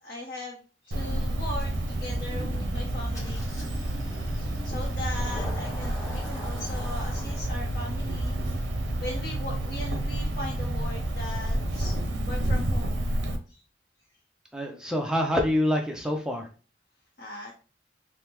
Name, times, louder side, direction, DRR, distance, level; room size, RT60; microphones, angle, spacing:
voice 1, 0.0-3.5 4.1-8.4 8.6-8.7 9.0-12.0 12.3-13.1 13.5-13.6 17.2-17.5, left 1 dB, 50° left, -3 dB, 0.7 m, -39 dB
Cricket, 0.9-13.4, right 1 dB, 80° right, 0.5 m, -29 dB
voice 2, 2.3-2.7 12.0-12.1 14.5-16.5, left 1 dB, 5° right, 2 dB, 0.4 m, -27 dB
Engine starting, 3.1-10.5, left 1 dB, 15° left, 0.9 m, -44 dB
3.4 x 2.0 x 2.9 m, 0.36 s
head